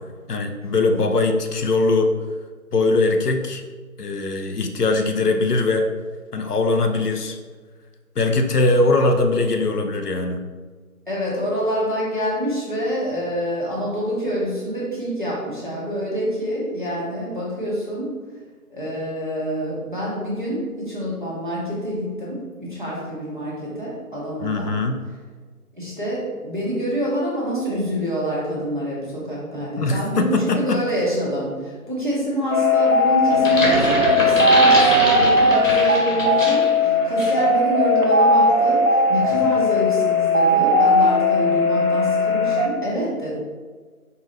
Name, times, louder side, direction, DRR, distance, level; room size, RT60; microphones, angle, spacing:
voice 1, 0.3-2.1 2.7-3.6 4.0-5.9 6.3-7.4 8.2-10.4 24.4-25.0 29.8-30.8, left 2 dB, 85° left, 5 dB, 0.6 m, -21 dB
voice 2, 11.1-18.1 18.7-24.7 25.7-43.3, equal, 35° right, -7 dB, 1.0 m, -26 dB
sound 1, 32.5-42.7, left 1 dB, 65° right, 0.9 m, -18 dB
sound 2, 33.3-36.8 37.2-37.4, left 1 dB, 60° left, 1.2 m, -23 dB
4.6 x 2.6 x 3.2 m, 1.5 s
figure-of-eight pair, 170°, 45 cm